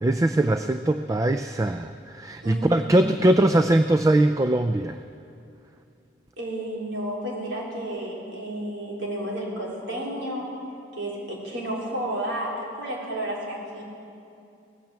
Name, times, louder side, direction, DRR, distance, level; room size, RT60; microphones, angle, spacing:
voice 1, 0.0-5.0, right 1 dB, 20° right, 9 dB, 0.3 m, -21 dB
voice 2, 2.4-3.0 6.4-10.5 11.0-13.8, right 1 dB, 85° right, -3 dB, 3.4 m, -32 dB
17.5 x 9.1 x 7.5 m, 2.6 s
head